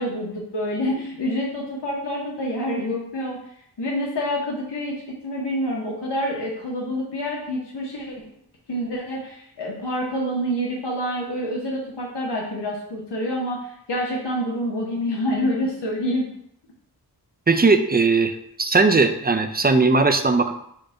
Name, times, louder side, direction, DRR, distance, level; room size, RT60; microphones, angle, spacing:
voice 1, 0.0-3.4 3.8-8.1 8.7-16.3, equal, 80° left, -3 dB, 0.8 m, -27 dB
voice 2, 17.5-20.5, right 3 dB, 25° right, 8 dB, 0.4 m, -18 dB
5.0 x 2.1 x 4.6 m, 0.71 s
wide cardioid pair, 55°, 40 cm